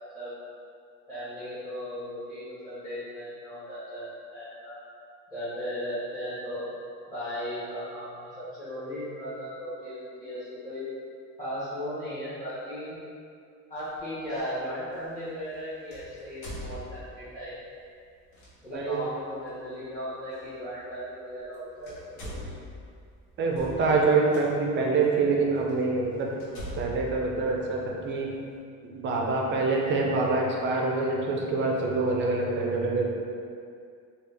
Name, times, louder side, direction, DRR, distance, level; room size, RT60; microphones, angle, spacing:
voice 1, 1.1-4.8 5.3-6.7 7.1-10.8 11.4-12.9 13.7-17.5 18.6-21.9 22.2-22.4, equal, 10° left, -14 dB, 1.1 m, -36 dB
sound 1, 13.8-14.0 15.9-17.4 18.3-18.5 20.4-20.5 21.4-21.5 21.8-24.4 25.1-25.2 25.7-25.8 26.4-28.2, equal, 80° left, 1.0 m, -41 dB
voice 2, 18.7-19.0 23.4-26.3 26.8-28.3 28.8-33.1, right 3 dB, 35° right, -1 dB, 0.5 m, -25 dB
3.3 x 2.4 x 3.4 m, 2.3 s
cardioid pair, 130°, 34 cm